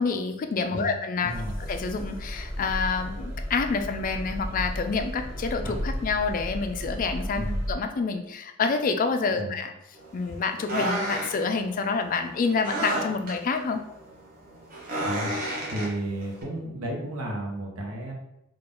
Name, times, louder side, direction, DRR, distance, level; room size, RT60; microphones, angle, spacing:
voice 1, 0.0-1.3 1.7-7.4 7.7-9.7 10.1-13.8, left 4 dB, 40° left, 7 dB, 0.3 m, -27 dB
voice 2, 1.2-1.6 7.3-7.6 9.3-9.6 15.0-15.3 15.7-18.1, right 1 dB, 90° right, -1 dB, 0.9 m, -33 dB
sound 1, 1.3-7.7, equal, 10° right, 0.8 m, -34 dB
sound 2, 9.9-16.4, right 1 dB, 45° right, 1.1 m, -32 dB
3.8 x 2.4 x 3.7 m, 0.84 s
head